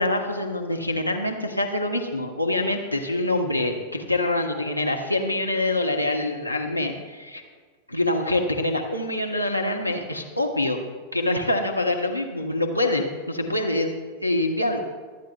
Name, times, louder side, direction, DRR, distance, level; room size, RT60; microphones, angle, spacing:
voice 1, 0.0-7.4 7.9-10.8 11.1-13.9 14.2-14.8, left 2 dB, 90° left, 2 dB, 1.0 m, -25 dB
25.0 x 9.1 x 2.4 m, 1.5 s
figure-of-eight pair, 90°, 0 cm